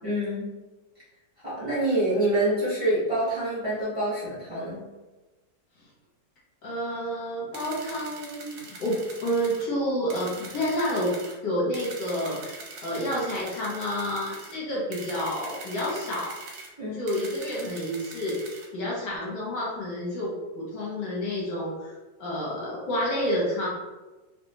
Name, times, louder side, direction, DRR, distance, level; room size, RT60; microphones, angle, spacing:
voice 1, 0.0-0.5 1.4-4.8 16.8-17.0, right 1 dB, 20° right, -12 dB, 1.4 m, -26 dB
voice 2, 6.6-11.1 11.4-16.3 16.8-21.9 22.2-23.7, equal, 70° left, -6 dB, 1.6 m, -29 dB
sound 1, 7.5-9.7 10.1-11.4 11.7-14.6 14.9-16.7 17.1-18.7, right 3 dB, 65° right, 1.2 m, -43 dB
3.3 x 3.0 x 2.7 m, 1.1 s
omnidirectional pair, 2.0 m